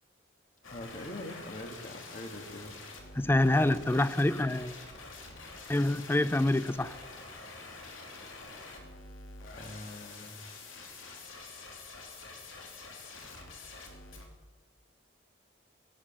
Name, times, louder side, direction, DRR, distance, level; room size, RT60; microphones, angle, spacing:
sound 1, 0.6-14.2, left 3 dB, 90° left, 2.9 m, -47 dB
voice 1, 0.7-2.7 9.5-10.4, left 1 dB, 40° left, 1.7 m, -43 dB
voice 2, 3.2-4.8 5.7-7.0, left 1 dB, 10° left, 0.4 m, -26 dB
18.0 x 7.7 x 8.7 m
head